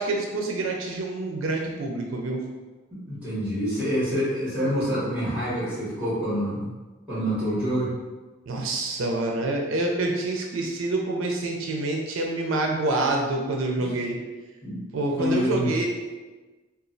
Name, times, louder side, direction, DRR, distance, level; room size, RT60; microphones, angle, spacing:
voice 1, 0.0-2.4 8.5-14.2 14.9-15.9, right 2 dB, 85° right, 1 dB, 0.4 m, -27 dB
voice 2, 3.1-6.6 7.1-7.9 13.8-14.0 14.6-14.8 15.2-15.7, equal, 5° right, -11 dB, 1.5 m, -27 dB
2.9 x 2.3 x 2.5 m, 1.2 s
head